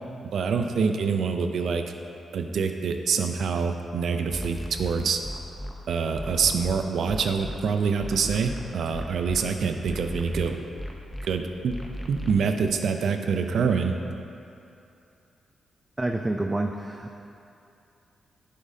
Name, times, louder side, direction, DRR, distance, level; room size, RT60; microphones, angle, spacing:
voice 1, 0.3-1.8 2.3-5.2 5.9-10.6 11.2-11.8 12.1-14.0, right 5 dB, 75° right, 6 dB, 0.5 m, -26 dB
sound 1, 4.3-5.7 6.2-7.6 8.0-9.4 9.8-11.3 11.7-12.3, equal, 15° left, 0.8 m, -35 dB
voice 2, 16.0-17.3, right 2 dB, 15° right, 2 dB, 0.4 m, -28 dB
11.0 x 6.6 x 2.8 m, 2.7 s
cardioid pair, 95°, 0 cm